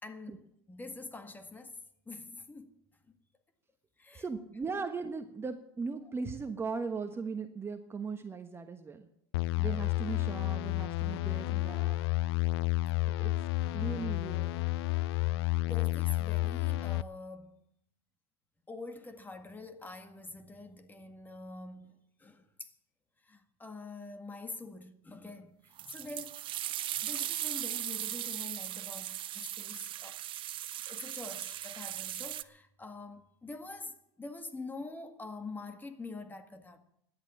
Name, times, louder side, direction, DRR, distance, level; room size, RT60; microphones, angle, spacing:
voice 1, 0.0-1.8 2.0-2.7 4.0-4.2 4.8-4.9 15.7-17.6 18.7-22.7 23.2-26.4 27.0-30.4 30.8-36.8, left 3 dB, 15° left, 1.8 m, -45 dB
voice 2, 4.1-9.1 9.6-12.0 13.2-13.3 13.7-14.6, right 4 dB, 20° right, 1.2 m, -38 dB
sound 1, 9.3-17.0, left 18 dB, 70° left, 0.6 m, -31 dB
sound 2, 25.8-32.4, right 13 dB, 40° right, 0.8 m, -38 dB
17.0 x 11.0 x 7.3 m
hypercardioid pair, 110°, 14 cm